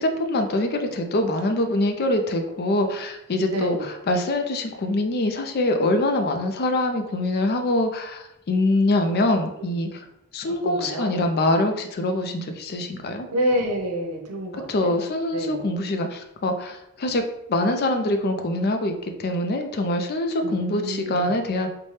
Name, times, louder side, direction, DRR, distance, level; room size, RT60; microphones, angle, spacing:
voice 1, 0.0-10.1 10.3-13.3 14.5-17.2 17.5-21.7, left 1 dB, 45° left, 6 dB, 0.4 m, -24 dB
voice 2, 3.5-3.9 10.4-11.1 13.3-15.0 15.3-15.7 20.4-21.3, equal, 85° right, 2 dB, 0.7 m, -28 dB
4.2 x 2.2 x 3.2 m, 0.85 s
head